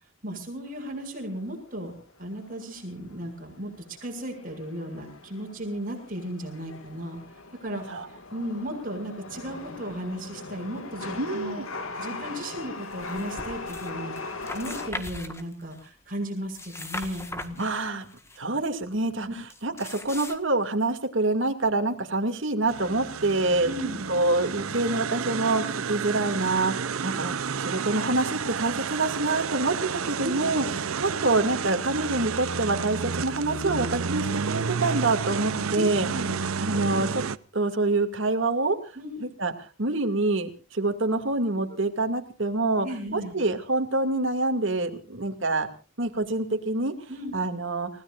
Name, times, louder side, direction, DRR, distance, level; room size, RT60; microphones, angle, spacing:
voice 1, 0.2-1.9 2.2-7.2 7.6-7.8 8.3-11.7 12.0-17.6 19.3-19.4 23.6-24.1 30.2-30.5 30.7-30.8 33.6-33.9 35.7-36.5 39.0-39.3 42.8-43.3 47.1-47.4, equal, 40° right, 1 dB, 7.3 m, -35 dB
Chatter / Subway metro underground, 0.7-14.9, left 3 dB, 75° left, 2.2 m, -40 dB
voice 2, 11.2-11.6 17.6-18.1 18.4-19.3 19.6-23.7 24.1-26.7 27.0-36.1 36.6-37.2 37.5-38.8 39.2-39.5 39.8-42.9 43.1-45.7 46.0-46.9 47.3-47.9, right 2 dB, 60° right, 5 dB, 2.5 m, -26 dB
sound 1, 12.9-13.9 14.2-15.9 16.4-18.4 19.5-20.4, left 2 dB, 10° left, 1.6 m, -39 dB
sound 2, 22.7-37.4, right 6 dB, 80° right, 0.7 m, -31 dB
30.0 x 17.0 x 2.6 m, 0.37 s
head